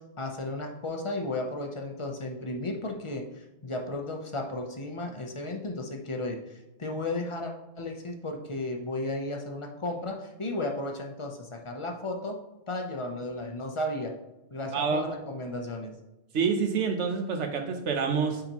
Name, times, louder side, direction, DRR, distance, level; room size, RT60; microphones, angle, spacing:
voice 1, 0.2-6.4 6.8-12.4 12.7-14.1 14.5-16.0, left 2 dB, 30° left, 2 dB, 0.7 m, -34 dB
voice 2, 14.7-15.1 16.3-18.4, right 5 dB, 80° right, 4 dB, 1.2 m, -27 dB
9.3 x 3.8 x 3.0 m, 0.97 s
omnidirectional pair, 1.2 m